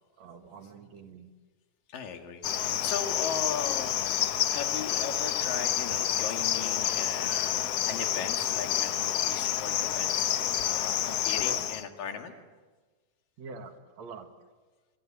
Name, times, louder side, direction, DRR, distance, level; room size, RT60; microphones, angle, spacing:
voice 1, 0.2-1.3 11.4-11.7 13.4-14.3, right 4 dB, 60° right, 6 dB, 2.6 m, -44 dB
voice 2, 1.9-4.0 4.5-12.3, left 6 dB, 85° left, 4 dB, 3.9 m, -38 dB
Cricket, 2.4-11.8, left 11 dB, 65° left, 1.6 m, -29 dB
25.5 x 25.0 x 7.6 m, 1.3 s
omnidirectional pair, 3.8 m